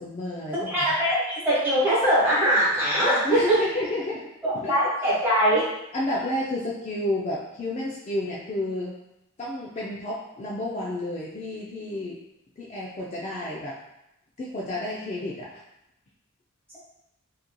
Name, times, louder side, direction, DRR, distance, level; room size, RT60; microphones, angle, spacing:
voice 1, 0.0-0.9 3.2-4.8 5.9-8.9 9.4-12.2 12.6-13.8 14.4-15.6, left 1 dB, 30° left, -5 dB, 0.3 m, -31 dB
voice 2, 0.7-3.6 4.4-5.6, equal, 10° right, -9 dB, 1.3 m, -22 dB
2.9 x 2.5 x 2.2 m, 0.87 s
head